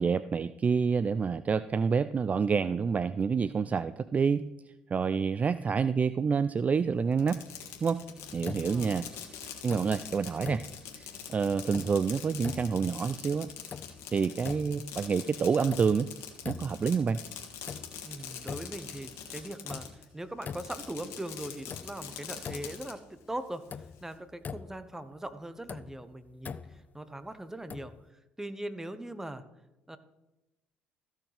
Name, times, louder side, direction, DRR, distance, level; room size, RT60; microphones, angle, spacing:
voice 1, 0.0-4.4 4.9-7.4 7.8-8.0 8.3-9.1 9.6-10.6 10.9-13.5 14.1-16.1 16.5-17.2, right 5 dB, 30° right, 15 dB, 0.3 m, -28 dB
Fireworks, 7.1-20.1 20.4-22.9, left 8 dB, 70° left, 1.6 m, -44 dB
sound 1, 8.4-9.1 9.5-10.1 10.4-11.1 11.5-12.1 12.4-13.0 13.5-14.2 14.4-15.0 15.4-16.1 16.4-17.0 17.4-18.1 18.4-19.0 19.4-21.0 21.4-21.5 21.7-23.0 23.2-23.3 23.7-25.0 25.4-27.0 27.7-28.1, left 6 dB, 35° left, 0.4 m, -43 dB
voice 2, 8.6-8.9 18.0-27.9 28.4-29.4 29.9-30.0, right 1 dB, 10° right, 11 dB, 1.0 m, -41 dB
14.5 x 6.3 x 3.4 m, 0.97 s
hypercardioid pair, 65°, 5 cm